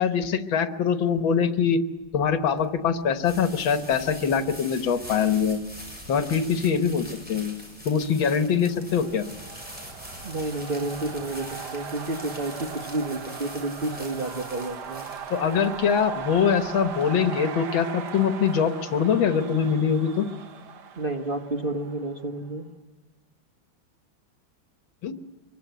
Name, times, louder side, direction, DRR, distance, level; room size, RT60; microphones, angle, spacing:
voice 1, 0.0-1.8 2.1-5.6 6.1-7.5 7.9-9.3 15.3-20.3 25.0-25.1, left 7 dB, 80° left, 9 dB, 2.0 m, -23 dB
sound 1, 2.0-16.9, equal, 5° right, 7.2 m, -43 dB
sound 2, 8.5-22.3, right 7 dB, 60° right, 1.7 m, -39 dB
voice 2, 10.2-15.1 21.0-22.7, right 2 dB, 30° right, 5 dB, 1.3 m, -30 dB
24.0 x 23.0 x 8.1 m, 1.2 s
omnidirectional pair, 2.1 m